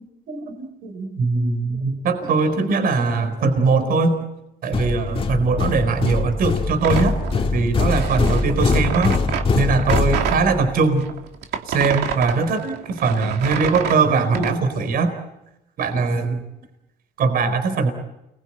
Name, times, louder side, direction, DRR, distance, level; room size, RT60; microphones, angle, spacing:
voice 1, 0.3-4.2 4.6-9.2 9.5-11.1 11.7-15.1 15.8-16.4 17.2-17.9, right 4 dB, 60° right, 8 dB, 4.3 m, -21 dB
sound 1, 4.7-10.7, left 4 dB, 30° left, 2.1 m, -22 dB
sound 2, 6.8-10.5 11.0-14.5, right 8 dB, 75° right, 2.8 m, -28 dB
29.5 x 21.5 x 8.8 m, 0.93 s
cardioid pair, 110°, 17 cm